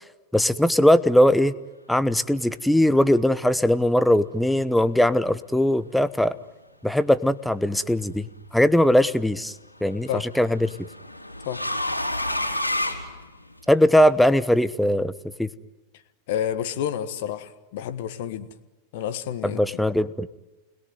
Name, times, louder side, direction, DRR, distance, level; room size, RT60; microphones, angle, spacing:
voice 1, 0.3-1.5 1.9-6.3 6.8-8.3 8.5-9.5 9.8-10.7 13.7-15.1 15.4-15.5 19.4-20.3, left 1 dB, 5° left, 15 dB, 1.1 m, -20 dB
sound 1, 7.9-8.4 9.8-13.8, left 1 dB, 90° left, 3.8 m, -30 dB
voice 2, 16.3-18.5 18.9-19.6, left 9 dB, 50° left, 11 dB, 1.6 m, -29 dB
30.0 x 21.0 x 9.4 m, 1.1 s
figure-of-eight pair, 90°, 0 cm